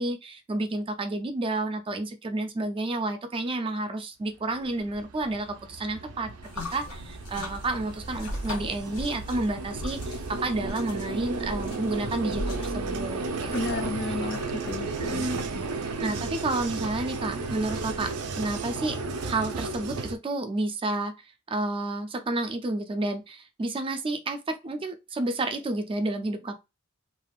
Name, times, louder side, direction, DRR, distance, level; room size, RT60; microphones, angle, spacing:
voice 1, 0.0-13.9 15.0-15.4 16.0-19.0 19.3-21.1 21.5-26.6, right 2 dB, 25° right, 0.4 m, -30 dB
Vehicle, 4.5-20.2, right 3 dB, 85° right, 0.5 m, -34 dB
sound 1, 6.4-18.1, equal, 85° left, 1.2 m, -40 dB
voice 2, 13.5-15.6, left 3 dB, 45° left, 0.4 m, -33 dB
3.4 x 2.4 x 2.3 m
head